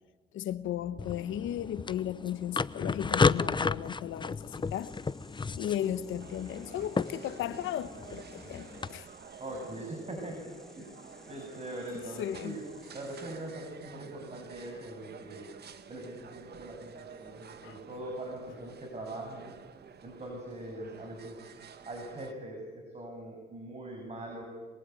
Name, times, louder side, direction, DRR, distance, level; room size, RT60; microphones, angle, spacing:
voice 1, 0.3-4.4 4.7-4.9 5.6-9.1 12.2-12.6 17.6-17.7, left 11 dB, 80° left, 1.2 m, -35 dB
sound 1, 1.0-8.9, left 4 dB, 25° left, 0.8 m, -33 dB
sound 2, 4.1-13.7, left 1 dB, ahead, 3.3 m, -57 dB
sound 3, 6.2-22.3, right 7 dB, 55° right, 1.9 m, -51 dB
voice 2, 9.4-10.9 11.3-15.5 15.9-19.5 20.0-21.5 21.9-24.4, right 1 dB, 35° right, 7.3 m, -42 dB
26.5 x 22.0 x 9.4 m
cardioid pair, 90°, 20 cm